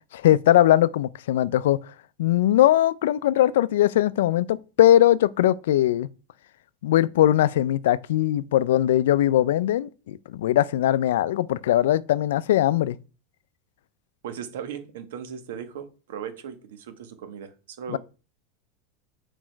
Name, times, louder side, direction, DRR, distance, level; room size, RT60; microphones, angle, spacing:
voice 1, 0.1-1.8 2.2-6.1 6.8-13.0 17.9-18.0, left 13 dB, 85° left, 0.4 m, -20 dB
voice 2, 14.2-18.0, right 8 dB, 80° right, 1.1 m, -37 dB
6.3 x 4.9 x 4.5 m
supercardioid pair, 170°, 0 cm